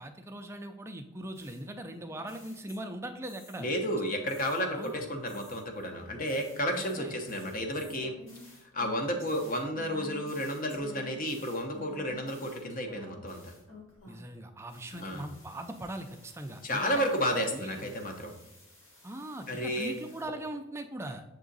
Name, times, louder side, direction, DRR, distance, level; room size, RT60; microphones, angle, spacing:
voice 1, 0.0-3.7 4.7-5.1 6.7-7.1 14.1-17.0 17.4-18.0 19.0-21.2, right 1 dB, 10° right, 6 dB, 0.4 m, -40 dB
sound 1, 1.3-3.8 4.3-14.4 14.7-20.2, left 1 dB, 65° left, 1.8 m, -52 dB
voice 2, 3.6-8.1 8.7-13.5 14.9-15.3 16.6-18.3 19.5-20.0, equal, 40° left, 4 dB, 0.8 m, -32 dB
6.9 x 3.6 x 3.9 m, 0.96 s
head